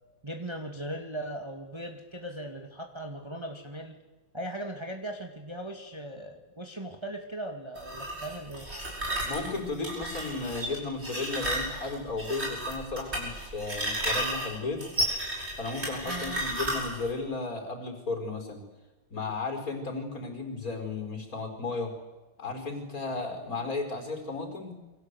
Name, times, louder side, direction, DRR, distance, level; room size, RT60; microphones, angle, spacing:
voice 1, 0.2-4.0 4.3-8.7 16.1-16.4, right 1 dB, 15° right, 3 dB, 2.1 m, -38 dB
sound 1, 7.8-17.1, right 1 dB, 35° right, 7.8 m, -33 dB
voice 2, 9.2-14.9 15.6-18.6 19.1-22.0 22.4-24.7, left 3 dB, 45° left, 4 dB, 5.1 m, -34 dB
28.5 x 24.0 x 8.2 m, 1.1 s
omnidirectional pair, 2.0 m